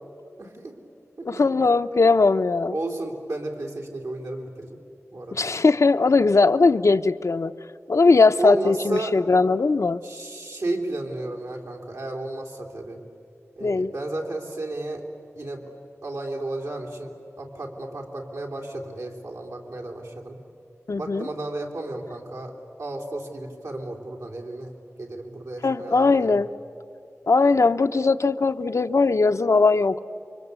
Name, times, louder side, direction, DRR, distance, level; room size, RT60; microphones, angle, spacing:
voice 1, 0.4-0.8 1.2-1.6 2.7-4.8 5.1-5.4 8.4-9.2 10.0-13.0 13.6-15.0 15.3-15.7 16.0-20.4 20.9-22.5 22.8-26.3, right 2 dB, 85° right, 0 dB, 3.1 m, -33 dB
voice 2, 1.3-2.8 5.3-7.5 7.9-10.0 13.6-13.9 20.9-21.3 25.6-26.5 27.3-30.0, left 3 dB, 65° left, 9 dB, 0.7 m, -19 dB
29.0 x 24.5 x 8.2 m, 2.6 s
wide cardioid pair, 55°, 5 cm